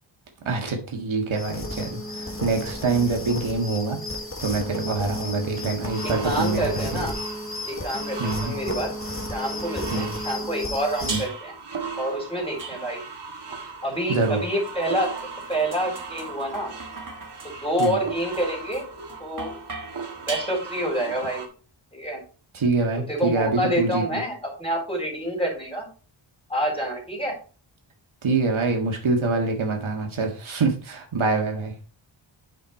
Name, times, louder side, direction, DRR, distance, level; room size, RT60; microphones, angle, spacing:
voice 1, 0.4-4.0 4.4-7.1 8.2-8.5 9.9-10.2 11.0-11.2 14.1-14.4 17.8-18.0 22.5-24.2 28.2-31.7, right 3 dB, 70° right, 2 dB, 1.8 m, -25 dB
sound 1, 1.3-11.3, left 1 dB, 25° left, 1.5 m, -33 dB
sound 2, 5.8-21.5, right 4 dB, 55° right, 1.7 m, -38 dB
voice 2, 6.0-7.2 7.7-8.9 9.3-11.5 12.0-13.0 13.8-15.1 15.5-16.7 17.4-18.8 19.2-19.6 20.2-21.4 21.9-22.2 23.0-25.9 26.5-27.3, equal, 10° left, 0 dB, 4.0 m, -27 dB
sound 3, 11.1-11.6 12.6-13.3 14.2-21.0, right 4 dB, 40° right, 1.5 m, -39 dB
9.0 x 5.4 x 4.2 m, 0.37 s
wide cardioid pair, 125°, 49 cm